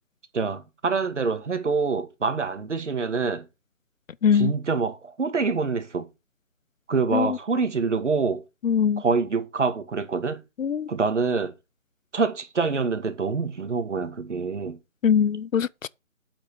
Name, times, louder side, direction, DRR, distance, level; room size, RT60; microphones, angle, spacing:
voice 1, 0.3-3.4 4.3-6.1 6.9-8.4 9.0-10.4 10.9-11.5 12.1-14.8, right 4 dB, 60° right, 2.3 m, -26 dB
voice 2, 4.2-4.5 7.1-7.4 8.6-9.0 10.6-10.9 15.0-15.9, left 7 dB, 70° left, 0.6 m, -22 dB
8.5 x 5.9 x 6.5 m
figure-of-eight pair, 165°, 41 cm